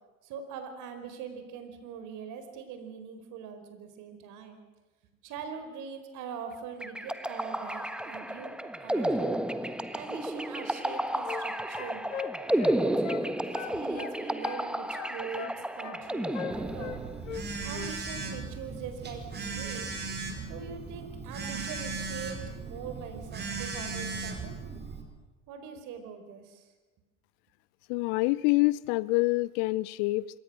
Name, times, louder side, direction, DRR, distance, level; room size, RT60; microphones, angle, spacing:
voice 1, 0.2-4.6 5.2-8.5 8.8-9.4 9.9-12.1 12.8-17.0 17.6-19.9 20.5-24.6 25.5-26.7, right 6 dB, 50° right, 7 dB, 4.6 m, -42 dB
sound 1, 6.8-17.2, right 1 dB, ahead, 1.4 m, -32 dB
sound 2, 10.7-11.5 11.7-13.3 13.5-14.7 14.9-16.0 16.3-17.5 17.7-18.0, left 9 dB, 75° left, 1.8 m, -40 dB
Telephone, 16.5-25.0, right 4 dB, 25° right, 4.9 m, -37 dB
voice 2, 27.9-30.4, left 22 dB, 50° left, 21 dB, 0.6 m, -26 dB
27.5 x 22.5 x 6.3 m, 1.2 s
figure-of-eight pair, 75°, 39 cm